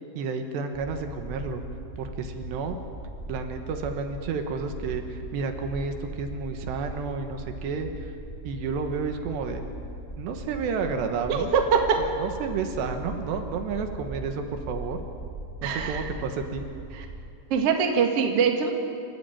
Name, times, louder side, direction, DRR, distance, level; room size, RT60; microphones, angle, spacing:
voice 1, 0.2-1.6 2.0-2.8 3.3-7.9 8.5-9.6 10.2-11.5 12.0-15.0 15.6-16.7, right 5 dB, 75° right, 6 dB, 3.5 m, -31 dB
sound 1, 0.7-17.3, right 2 dB, 10° left, 6.4 m, -39 dB
voice 2, 11.3-11.8 15.6-16.0 16.9-17.0 17.5-18.7, right 6 dB, 45° right, 3 dB, 2.1 m, -23 dB
28.0 x 13.5 x 9.2 m, 2.5 s
omnidirectional pair, 5.0 m